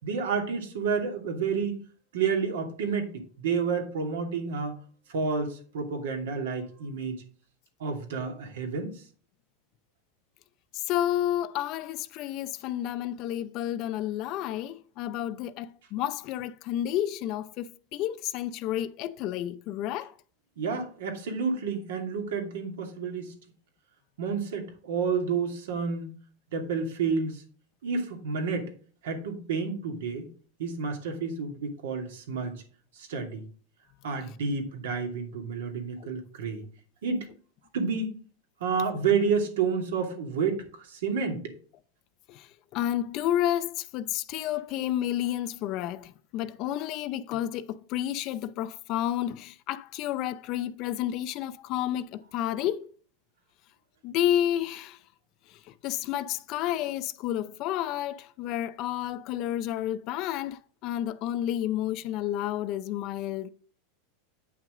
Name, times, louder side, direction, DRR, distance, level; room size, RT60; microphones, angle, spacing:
voice 1, 0.0-1.8 2.1-3.1 3.4-4.8 5.1-7.2 7.8-8.9 20.6-23.3 24.2-26.1 26.5-27.4 27.8-28.7 29.0-30.3 30.6-32.6 33.0-33.4 34.0-36.6 37.0-37.3 37.7-38.1 38.6-41.5, right 5 dB, 85° right, 2.6 m, -30 dB
voice 2, 10.7-20.1 42.3-52.9 54.0-55.0 55.5-63.5, left 12 dB, 35° left, 0.5 m, -31 dB
8.8 x 6.0 x 3.8 m
supercardioid pair, 165°, 0 cm